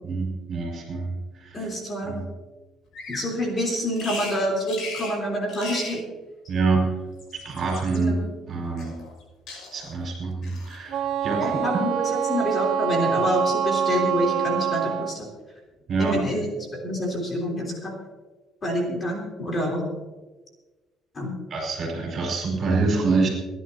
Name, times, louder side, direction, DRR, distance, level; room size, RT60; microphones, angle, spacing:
voice 1, 0.0-1.7 2.0-2.3 6.5-7.0 7.4-8.2 8.5-9.0 9.7-11.8 15.9-16.2 21.5-23.3, right 3 dB, 40° right, 0 dB, 5.1 m, -26 dB
voice 2, 1.5-2.2 3.1-6.0 7.9-8.2 11.3-15.3 16.0-16.4 16.8-17.9 18.6-19.8 21.1-21.3, equal, 25° left, -1 dB, 3.4 m, -27 dB
Bird vocalization bird call bird song, 2.9-3.3 4.0-4.4 4.7-5.2 5.5-6.0 7.0-8.0 8.8-9.2 9.5-9.9 10.4-10.8, left 3 dB, 60° left, 6.0 m, -37 dB
Wind instrument woodwind instrument, 10.9-15.2, right 9 dB, 60° right, 0.6 m, -25 dB
29.5 x 11.0 x 2.8 m, 1.2 s
cardioid pair, 165°, 0 cm